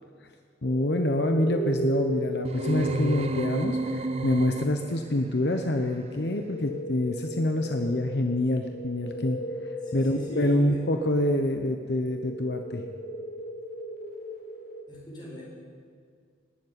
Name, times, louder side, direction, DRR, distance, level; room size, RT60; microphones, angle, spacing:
voice 1, 0.6-9.4 9.9-12.8, left 1 dB, 70° left, 4 dB, 0.9 m, -26 dB
sound 1, 0.6-14.8, right 1 dB, 50° left, 1.4 m, -36 dB
sound 2, 2.4-5.1, right 1 dB, 35° right, 0.6 m, -30 dB
voice 2, 9.8-10.9 14.9-15.4, left 1 dB, 25° left, -3 dB, 4.5 m, -40 dB
18.5 x 7.3 x 9.6 m, 2.1 s
head